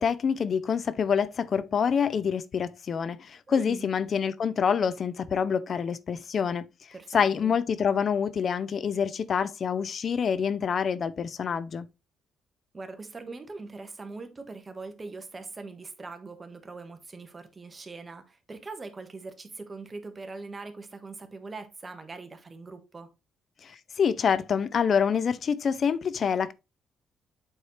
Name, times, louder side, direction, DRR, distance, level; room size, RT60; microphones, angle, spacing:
voice 1, 0.0-6.6 7.1-11.9 23.6-26.5, left 7 dB, 50° left, 0.4 m, -26 dB
voice 2, 3.5-3.9 6.9-7.6 12.7-23.1, right 3 dB, 30° right, 1.3 m, -42 dB
7.9 x 4.3 x 3.1 m
cardioid pair, 90°, 0 cm